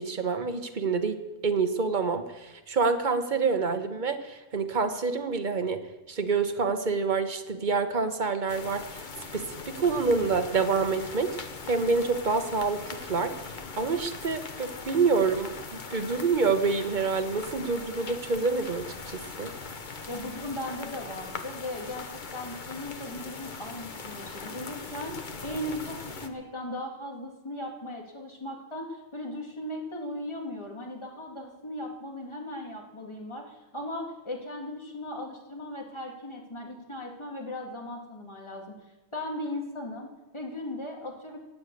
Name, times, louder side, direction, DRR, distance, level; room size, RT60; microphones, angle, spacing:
voice 1, 0.0-5.8 6.1-9.0 9.3-11.4 11.7-19.5, right 4 dB, 45° right, 8 dB, 1.2 m, -27 dB
sound 1, 8.5-26.3, left 4 dB, 45° left, 1.1 m, -40 dB
voice 2, 20.1-38.6 39.1-41.4, left 1 dB, 25° left, 0 dB, 2.4 m, -37 dB
14.5 x 9.4 x 8.4 m, 1.1 s
omnidirectional pair, 1.2 m